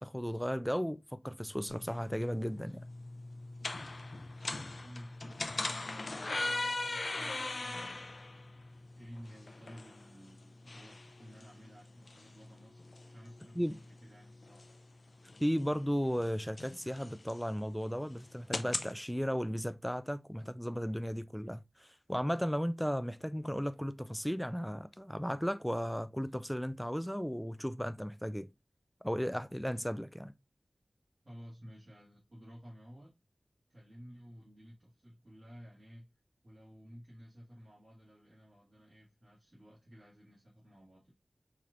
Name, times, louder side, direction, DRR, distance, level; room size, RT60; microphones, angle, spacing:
voice 1, 0.0-2.8 13.6-13.8 15.4-28.5 29.0-30.3, equal, ahead, 0.3 m, -35 dB
sound 1, 1.7-18.9, left 2 dB, 60° left, 0.5 m, -41 dB
voice 2, 4.8-14.7 31.2-33.1 33.7-36.1 36.4-41.1, equal, 50° right, 1.7 m, -54 dB
4.2 x 3.2 x 2.5 m
wide cardioid pair, 70°, 0 cm